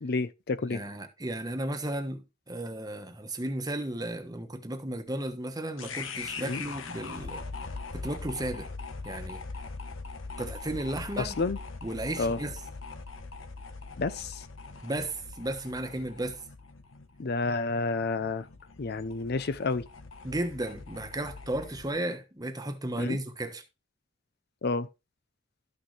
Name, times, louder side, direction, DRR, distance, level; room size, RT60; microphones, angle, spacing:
voice 1, 0.0-0.8 6.4-6.6 11.2-11.6 12.2-12.4 14.0-14.4 17.2-18.5 18.8-19.9 23.0-23.2 24.6-24.9, left 3 dB, 55° left, 0.5 m, -30 dB
voice 2, 0.7-7.4 7.9-8.7 9.0-9.4 10.4-11.3 11.8-12.6 14.8-16.4 20.2-23.6, right 1 dB, 20° right, 1.2 m, -34 dB
sound 1, 5.8-22.0, left 4 dB, 90° left, 1.2 m, -42 dB
13.0 x 6.4 x 3.3 m
head